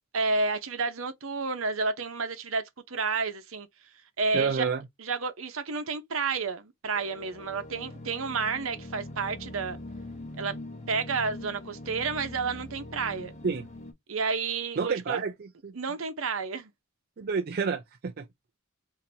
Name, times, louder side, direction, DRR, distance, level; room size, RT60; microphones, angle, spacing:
voice 1, 0.1-3.7 4.2-4.7 5.0-9.8 10.4-10.5 10.9-13.3 14.1-15.2 15.7-16.7, right 4 dB, 75° right, 0.9 m, -30 dB
voice 2, 4.3-4.8 13.4-13.6 14.8-15.7 17.2-18.2, right 5 dB, 50° right, 0.4 m, -29 dB
sound 1, 6.9-13.9, left 1 dB, 35° left, 0.9 m, -42 dB
3.8 x 2.8 x 2.8 m
head